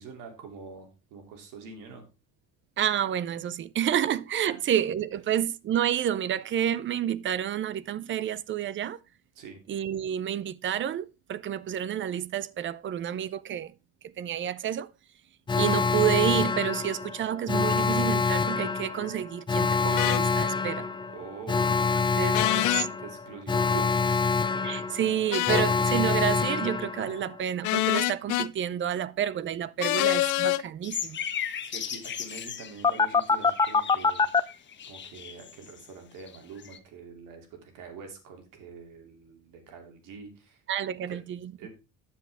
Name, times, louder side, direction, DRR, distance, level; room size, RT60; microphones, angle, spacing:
voice 1, 0.0-2.0 9.3-9.6 21.1-24.2 31.6-34.3 34.8-40.6 41.1-41.2 41.6-41.7, right 5 dB, 70° right, 2.9 m, -45 dB
voice 2, 2.8-9.0 9.7-13.7 14.2-14.9 15.6-20.9 22.1-22.4 23.7-23.9 24.6-31.2 40.7-41.5, right 10 dB, 35° right, 0.5 m, -29 dB
Alarm, 15.5-27.4 32.8-34.4, left 5 dB, 15° left, 0.5 m, -26 dB
sound 1, 20.0-20.2 22.3-22.9 25.3-25.7 27.6-28.5 29.8-30.6, left 18 dB, 65° left, 0.6 m, -25 dB
sound 2, 30.8-35.9 36.2-36.8, left 8 dB, 35° left, 1.1 m, -37 dB
10.0 x 7.2 x 3.5 m
cardioid pair, 110°, 33 cm